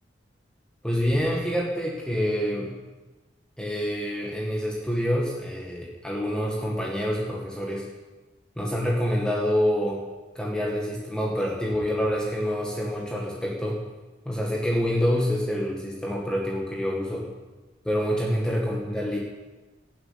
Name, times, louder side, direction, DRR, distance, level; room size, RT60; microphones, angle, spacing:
voice 1, 0.8-2.7 3.6-7.9 8.6-10.0 10.4-13.8 14.3-17.3 17.9-19.2, equal, 5° left, -3 dB, 1.9 m, -27 dB
17.5 x 7.7 x 9.7 m, 1.2 s
head